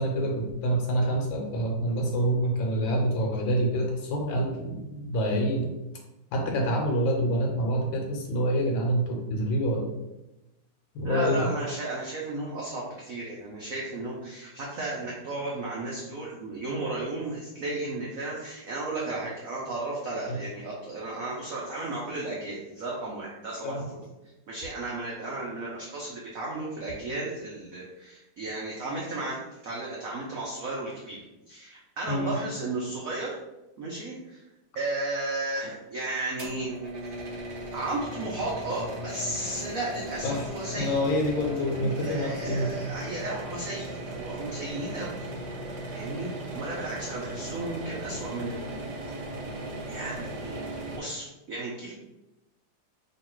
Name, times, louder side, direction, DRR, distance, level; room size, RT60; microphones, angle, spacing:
voice 1, 0.0-5.7 6.3-9.9 10.9-11.5 20.3-20.5 23.6-23.8 32.1-32.4 40.2-40.4 40.7-42.8, equal, 70° left, 1 dB, 1.4 m, -27 dB
voice 2, 11.0-23.8 24.5-33.3 33.8-34.4 34.7-36.8 37.7-41.0 42.0-45.3 45.9-48.9 49.9-50.6 50.9-51.9, right 2 dB, 80° right, -4 dB, 0.7 m, -34 dB
sound 1, 36.4-51.0, right 1 dB, 60° right, 1.1 m, -37 dB
3.1 x 2.9 x 4.4 m, 0.98 s
omnidirectional pair, 2.3 m